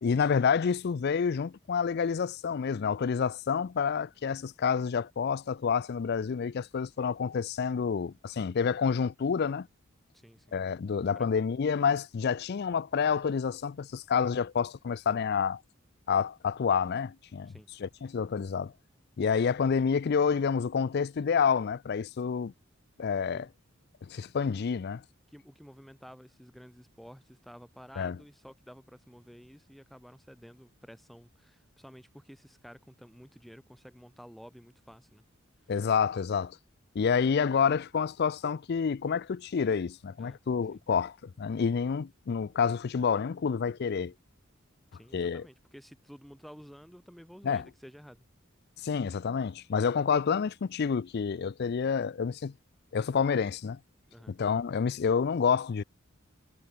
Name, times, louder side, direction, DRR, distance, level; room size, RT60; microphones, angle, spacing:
voice 1, 0.0-9.7 10.5-15.6 16.1-17.5 17.8-18.7 19.2-22.5 23.0-23.5 24.0-25.0 28.0-28.2 35.7-36.6 36.9-44.1 45.1-45.5 47.4-47.7 48.8-52.5 52.9-53.8 54.3-55.8, left 6 dB, 50° left, 0.4 m, -28 dB
voice 2, 10.1-10.6 11.1-11.3 17.4-17.7 23.3-23.5 25.3-35.2 40.2-40.4 40.7-40.8 44.9-48.3 54.1-54.4, equal, ahead, 5.2 m, -52 dB
head